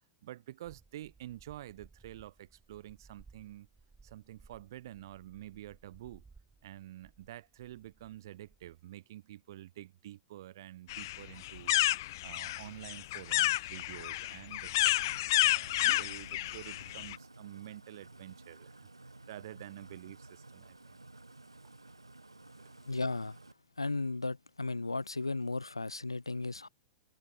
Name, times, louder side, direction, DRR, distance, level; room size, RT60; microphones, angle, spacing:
voice 1, 0.2-3.7 4.0-6.2 6.6-11.8 12.2-18.9 19.3-21.0, right 14 dB, 55° right, 1.0 m, -48 dB
sound 1, 0.6-8.8, right 4 dB, 10° right, 4.2 m, -61 dB
sound 2, 10.9-17.2, left 17 dB, 50° left, 0.4 m, -30 dB
sound 3, 14.9-23.5, right 2 dB, 85° right, 4.1 m, -54 dB
voice 2, 22.9-23.4 23.8-26.7, left 3 dB, 85° left, 0.7 m, -35 dB
figure-of-eight pair, 95°, 2 cm